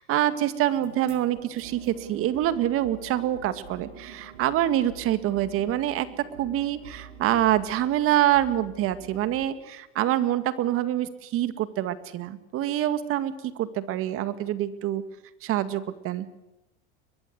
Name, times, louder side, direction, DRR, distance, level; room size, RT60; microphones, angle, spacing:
voice 1, 0.1-6.1 6.4-13.3 13.6-15.0 15.4-16.3, right 12 dB, 45° right, 11 dB, 2.0 m, -26 dB
sound 1, 0.7-9.5, right 7 dB, 70° right, 4.6 m, -46 dB
22.5 x 22.0 x 8.2 m, 0.91 s
hypercardioid pair, 100°, 32 cm